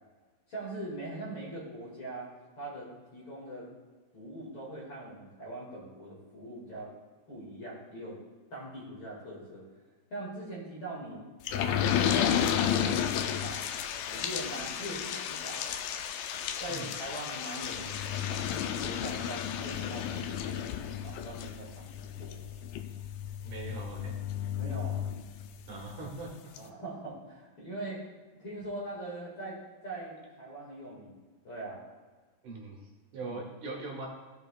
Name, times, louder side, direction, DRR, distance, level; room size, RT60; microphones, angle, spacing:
voice 1, 0.5-2.3 2.6-3.7 4.1-7.0 7.3-8.2 8.5-9.6 10.1-13.6 14.1-15.6 16.6-22.4 24.6-25.0 26.6-28.0 28.4-31.8 33.2-33.4, right 1 dB, 40° left, -5 dB, 2.5 m, -42 dB
sound 1, 11.5-25.8 26.2-26.3 26.6-26.7, left 9 dB, 85° left, 2.3 m, -32 dB
voice 2, 23.4-24.2 25.7-26.3 32.4-34.1, right 3 dB, 65° right, -1 dB, 2.6 m, -41 dB
15.0 x 6.8 x 2.4 m, 1.3 s
omnidirectional pair, 4.1 m